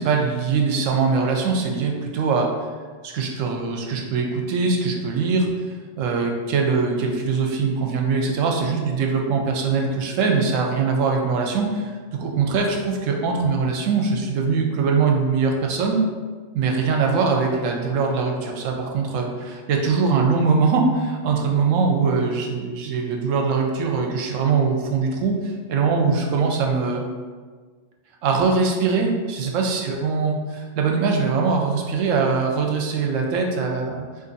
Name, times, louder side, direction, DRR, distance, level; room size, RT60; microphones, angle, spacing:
voice 1, 0.0-2.5 3.0-5.5 6.0-11.9 12.2-16.0 16.5-25.4 25.7-27.1 28.2-34.0, right 4 dB, 80° right, 2 dB, 0.9 m, -22 dB
2.6 x 2.5 x 3.8 m, 1.5 s
omnidirectional pair, 1.3 m